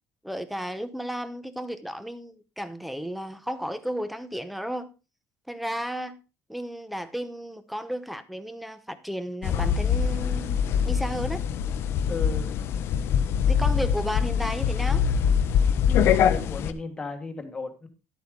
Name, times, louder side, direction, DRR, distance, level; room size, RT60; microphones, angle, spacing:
voice 1, 0.2-4.9 5.5-6.2 6.5-11.5 13.5-15.1, equal, ahead, 0.7 m, -33 dB
sound 1, 9.4-16.7, left 7 dB, 55° left, 0.7 m, -24 dB
voice 2, 12.1-12.5 15.9-17.9, left 4 dB, 15° left, 1.4 m, -35 dB
11.5 x 8.3 x 3.7 m
cardioid pair, 175°, 5 cm